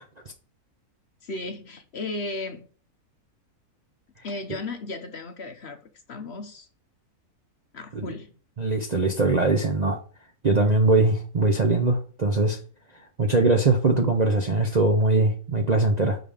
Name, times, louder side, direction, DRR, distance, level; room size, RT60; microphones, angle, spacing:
voice 1, 1.2-2.7 4.2-5.8 6.1-6.7 7.7-8.3, left 2 dB, 50° left, 1.0 m, -35 dB
voice 2, 8.6-10.0 10.4-12.6 13.2-16.2, right 2 dB, 40° right, 0.6 m, -21 dB
6.1 x 5.4 x 4.9 m
omnidirectional pair, 1.6 m